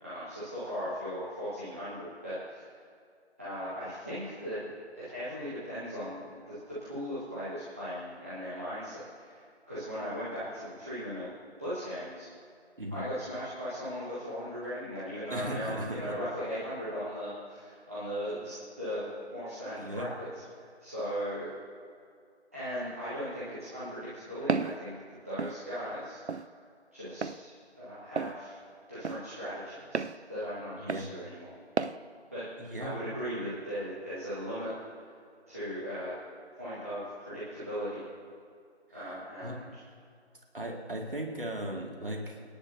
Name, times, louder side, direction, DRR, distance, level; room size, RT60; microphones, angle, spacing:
voice 1, 0.0-2.6 3.4-4.7 5.0-6.2 6.5-6.6 6.8-9.3 9.7-11.3 11.6-12.2 12.9-20.3 20.8-21.5 22.5-24.9 25.2-26.2 26.9-28.6 28.9-31.5 32.3-32.5 32.8-34.7 35.5-36.1 36.6-38.0 38.9-39.6, equal, 15° right, -13 dB, 1.4 m, -38 dB
voice 2, 15.3-16.2 19.8-20.1 30.8-31.1 32.6-33.0 38.9-39.1 39.4-39.6 40.5-42.4, right 1 dB, 50° right, 1 dB, 2.1 m, -37 dB
Walk footsteps, 24.5-24.8 25.4-25.6 26.3-26.5 27.2-27.4 28.2-28.4 29.0-29.2 29.9-30.2 30.9-31.1 31.8-32.0, right 5 dB, 75° right, 0.6 m, -31 dB
26.5 x 10.5 x 2.7 m, 2.3 s
figure-of-eight pair, 165°, 34 cm